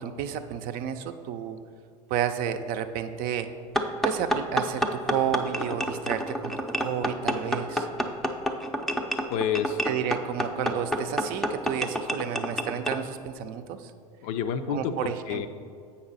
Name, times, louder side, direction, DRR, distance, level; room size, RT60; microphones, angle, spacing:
voice 1, 0.0-1.6 2.1-3.5 4.0-7.9 9.8-13.9 14.7-15.5, right 9 dB, 50° right, 8 dB, 0.5 m, -31 dB
sound 1, 3.7-13.0, equal, ahead, 0.5 m, -29 dB
voice 2, 9.3-9.8 14.2-15.5, left 7 dB, 60° left, 10 dB, 0.5 m, -29 dB
7.8 x 5.5 x 4.1 m, 2.2 s
hypercardioid pair, 85°, 19 cm